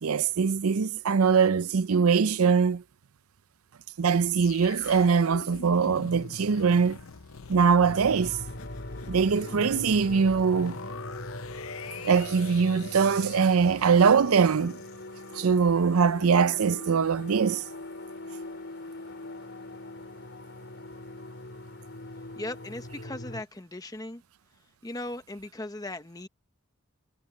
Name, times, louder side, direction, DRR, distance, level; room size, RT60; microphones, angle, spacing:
voice 1, 0.0-2.8 4.0-7.0 7.5-8.4 9.1-10.8 12.0-14.8 15.3-17.6, right 5 dB, 90° right, 0.6 m, -22 dB
sound 1, 4.3-15.5 15.9-16.0, left 5 dB, 75° left, 0.8 m, -44 dB
sound 2, 7.8-23.4, left 1 dB, 55° left, 4.2 m, -41 dB
voice 2, 22.4-24.2 24.8-26.3, left 1 dB, 15° left, 1.0 m, -38 dB
head